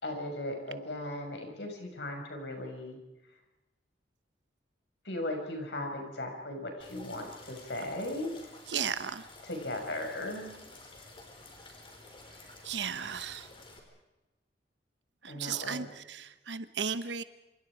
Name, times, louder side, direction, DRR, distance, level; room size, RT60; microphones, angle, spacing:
voice 1, 0.0-3.0 5.0-8.3 9.4-10.6 15.3-15.9, left 1 dB, 70° left, 3 dB, 6.4 m, -37 dB
sound 1, 6.8-13.8, left 2 dB, 30° left, 4.8 m, -52 dB
voice 2, 8.7-9.3 12.6-13.5 15.2-17.2, right 7 dB, 75° right, 12 dB, 1.1 m, -35 dB
27.5 x 27.0 x 5.0 m, 1.0 s
head